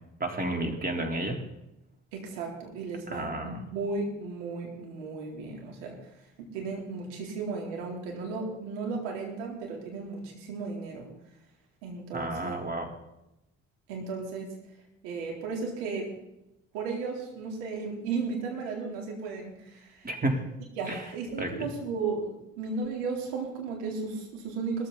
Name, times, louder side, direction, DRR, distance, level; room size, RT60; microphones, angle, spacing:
voice 1, 0.2-1.4 3.1-3.6 12.1-12.9 20.0-20.4 20.9-21.0 21.4-21.5, right 1 dB, 25° right, 2 dB, 4.0 m, -31 dB
voice 2, 2.1-6.0 6.5-11.1 11.8-12.6 13.9-14.5 15.0-16.1 16.7-20.1 20.8-24.9, right 4 dB, 75° right, 0 dB, 3.9 m, -35 dB
20.0 x 14.0 x 4.2 m, 0.88 s
figure-of-eight pair, 50°, 36 cm